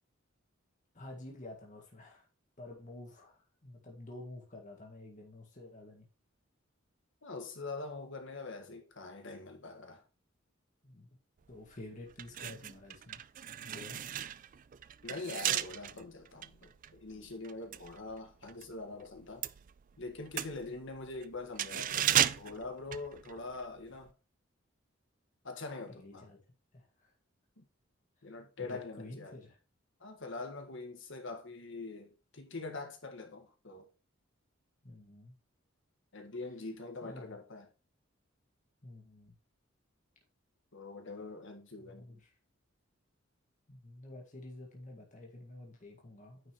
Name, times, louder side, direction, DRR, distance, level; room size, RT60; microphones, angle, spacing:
voice 1, 0.9-2.3 2.6-6.0 10.8-11.1 11.5-13.2 13.6-14.1 25.9-26.4 26.7-27.1 28.6-29.6 34.8-35.3 37.0-37.3 38.8-39.3 41.7-42.3 43.7-46.4, left 1 dB, 40° left, 1.8 m, -50 dB
voice 2, 7.2-10.0 13.9-14.1 15.0-19.5 20.0-24.1 25.4-26.3 27.6-27.7 28.2-29.4 30.0-33.9 36.1-37.7 40.7-42.1, left 3 dB, 65° left, 1.6 m, -44 dB
sound 1, 11.5-11.7 12.1-18.7 19.0-23.7 23.9-24.1, right 11 dB, 40° right, 0.3 m, -35 dB
9.4 x 5.4 x 3.0 m
head